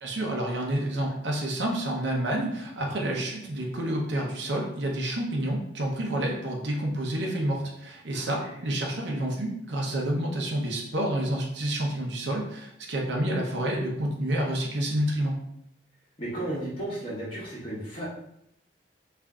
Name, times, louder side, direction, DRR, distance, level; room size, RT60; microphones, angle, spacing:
voice 1, 0.0-15.4, right 1 dB, 70° right, -1 dB, 0.7 m, -29 dB
voice 2, 8.1-8.5 16.2-18.1, right 1 dB, 30° left, -9 dB, 0.9 m, -34 dB
3.3 x 2.5 x 3.6 m, 0.75 s
head